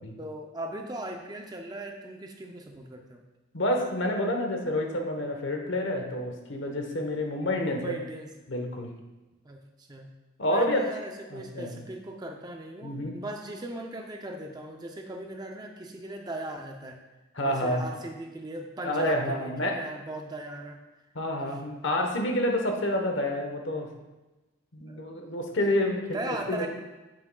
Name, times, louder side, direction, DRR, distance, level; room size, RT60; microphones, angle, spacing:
voice 1, 0.2-3.2 7.6-8.3 9.4-10.1 10.5-17.0 17.4-20.8 24.9-25.0 26.1-26.7, right 1 dB, 20° right, 3 dB, 0.5 m, -38 dB
voice 2, 3.5-8.0 8.5-8.9 10.4-11.0 11.3-11.7 12.8-13.2 17.3-17.8 18.8-19.8 21.1-23.9 24.7-26.7, left 1 dB, 60° left, 3 dB, 1.0 m, -28 dB
8.6 x 7.3 x 2.3 m, 1.1 s
head